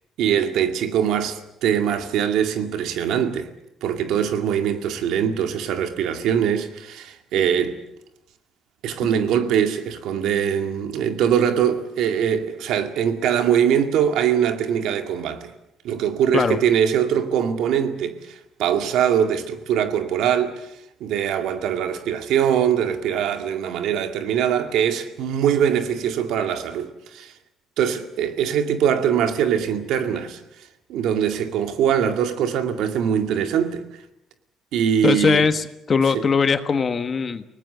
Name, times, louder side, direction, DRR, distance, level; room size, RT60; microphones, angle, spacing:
voice 1, 0.2-3.5 3.8-7.8 8.8-15.5 15.8-20.7 21.0-27.3 27.8-30.4 30.9-33.8 34.7-35.5 36.1-36.2, right 8 dB, 80° right, 2.1 m, -22 dB
voice 2, 35.0-37.4, left 5 dB, 35° left, 1.4 m, -20 dB
30.0 x 19.0 x 6.8 m
cardioid pair, 125°, 0 cm